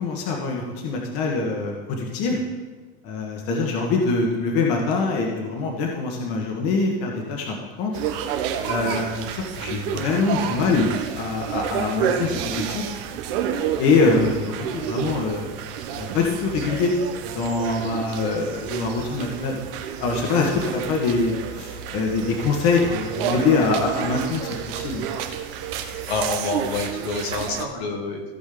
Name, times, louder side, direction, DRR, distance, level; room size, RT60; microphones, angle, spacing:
voice 1, 0.0-2.4 3.0-7.9 8.7-9.3 9.6-10.9 11.1-12.9 13.8-15.5 16.0-16.9 17.3-19.6 20.0-25.0, left 4 dB, 50° left, 0 dB, 1.6 m, -24 dB
sound 1, 7.9-27.6, right 8 dB, 60° right, 1.1 m, -30 dB
voice 2, 26.1-28.3, left 3 dB, 85° left, 0 dB, 2.5 m, -27 dB
15.5 x 5.2 x 3.9 m, 1.3 s
supercardioid pair, 140°, 31 cm